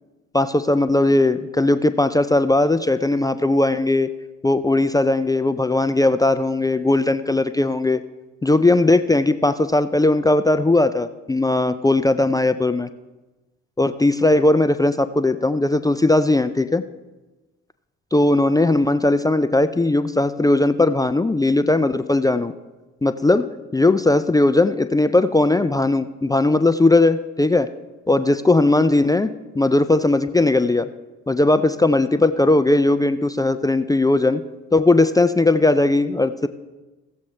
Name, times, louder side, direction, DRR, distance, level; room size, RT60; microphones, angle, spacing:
voice 1, 0.3-4.1 4.4-8.0 8.4-12.9 13.8-16.8 18.1-22.5 23.0-23.5 23.7-27.7 28.1-29.3 29.6-30.9 31.3-34.4 34.7-36.5, left 2 dB, 10° left, 11 dB, 0.4 m, -18 dB
16.5 x 7.2 x 3.2 m, 1.1 s
hypercardioid pair, 50°, 34 cm